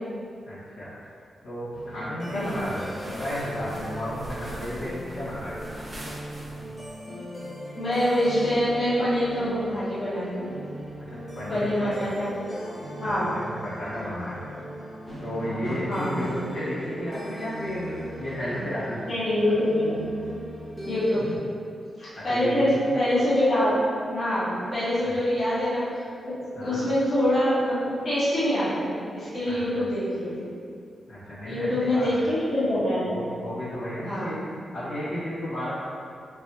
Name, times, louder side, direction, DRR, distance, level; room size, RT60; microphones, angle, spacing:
voice 1, 0.5-0.9 1.4-5.7 11.1-12.1 13.1-14.5 15.2-19.1 21.2-21.3 22.1-22.8 25.0-25.1 26.5-26.8 29.4-29.9 31.1-32.3 33.1-34.4 34.7-35.7, equal, 70° left, -11 dB, 1.4 m, -33 dB
sound 1, 1.7-21.4, equal, 20° left, 1.1 m, -39 dB
voice 2, 2.3-2.6 7.1-7.2 7.8-10.5 11.5-12.3 13.0-13.3 15.4-16.3 19.1-20.1 20.9-21.2 22.0-23.7 24.1-26.0 26.6-27.8 28.0-30.4 31.4-33.1 34.0-34.3, left 1 dB, 40° left, -13 dB, 1.2 m, -25 dB
sound 2, 2.3-6.9, right 1 dB, 20° right, 0.5 m, -42 dB
4.6 x 2.7 x 2.6 m, 2.4 s
wide cardioid pair, 170°, 0 cm